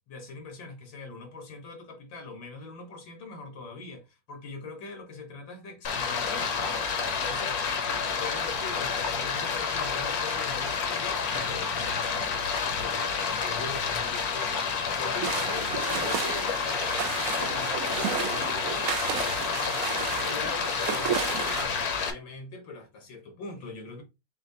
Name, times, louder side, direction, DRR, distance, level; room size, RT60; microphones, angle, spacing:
voice 1, 0.1-6.9 7.2-12.5 12.8-16.9 17.3-18.9 19.1-24.0, left 3 dB, 85° left, 2.0 m, -42 dB
Stream, 5.8-22.1, left 6 dB, 60° left, 1.2 m, -29 dB
sound 1, 15.2-21.6, right 9 dB, 65° right, 0.9 m, -33 dB
7.2 x 2.4 x 2.7 m
omnidirectional pair, 2.0 m